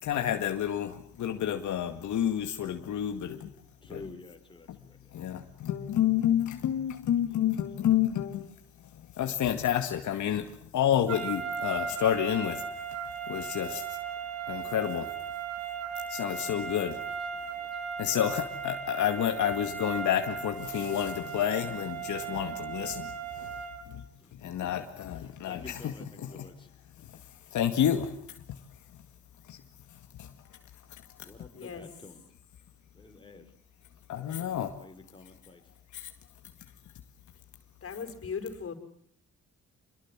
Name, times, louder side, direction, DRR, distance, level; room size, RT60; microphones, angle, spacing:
voice 1, 0.0-3.5 3.9-4.0 4.7-12.6 13.3-14.0 14.5-15.1 16.1-17.0 18.0-24.1 24.3-26.5 27.0-28.7 28.9-29.0 29.4-29.6 29.9-30.6 30.9-31.3 34.1-34.8 35.9-36.1 37.9-38.0, left 10 dB, 70° left, 5 dB, 2.2 m, -30 dB
voice 2, 3.8-5.2 16.9-17.0 17.3-17.7 24.2-24.7 25.2-26.7 31.2-32.3 32.9-33.5 34.2-35.7, left 3 dB, 15° left, 3 dB, 5.3 m, -50 dB
sound 1, 11.1-23.9, right 7 dB, 60° right, 3.7 m, -37 dB
voice 3, 37.8-38.7, left 6 dB, 50° left, 7 dB, 5.3 m, -37 dB
27.0 x 22.0 x 7.6 m, 0.65 s
cardioid pair, 90°, 30 cm